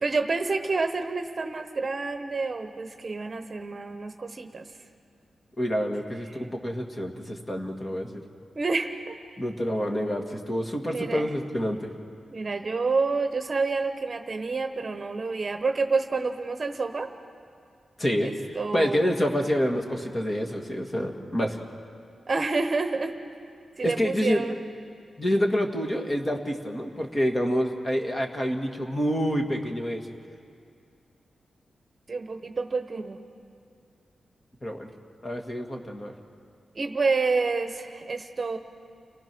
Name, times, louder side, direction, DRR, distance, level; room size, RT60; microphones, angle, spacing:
voice 1, 0.0-4.6 8.5-9.2 10.9-11.3 12.3-17.1 18.2-19.0 22.3-23.2 23.8-24.5 32.1-33.2 36.7-38.6, right 4 dB, 35° right, 7 dB, 1.1 m, -28 dB
voice 2, 5.6-8.2 9.4-11.9 18.0-21.6 23.8-24.4 25.2-30.1 34.6-34.9 35.2-36.1, equal, 25° left, 2 dB, 2.0 m, -27 dB
29.5 x 19.0 x 6.2 m, 2.4 s
wide cardioid pair, 115°, 0 cm